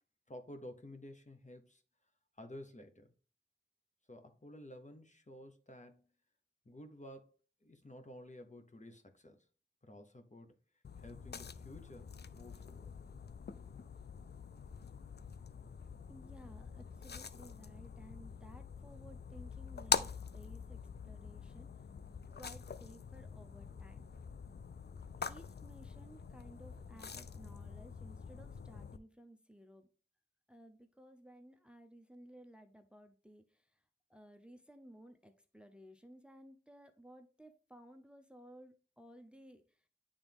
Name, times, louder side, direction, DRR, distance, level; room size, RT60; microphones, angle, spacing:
voice 1, 0.3-1.8 2.4-3.1 4.1-6.1 6.6-7.3 7.6-9.4 9.8-10.5 11.0-12.9, left 1 dB, 35° left, 1.0 m, -52 dB
sound 1, 10.8-29.0, left 6 dB, 55° left, 0.5 m, -44 dB
voice 2, 16.1-21.9 22.4-24.0 25.2-29.9 30.5-33.8 34.1-39.9, right 1 dB, 5° right, 0.7 m, -57 dB
8.9 x 3.5 x 3.5 m
wide cardioid pair, 45°, 20 cm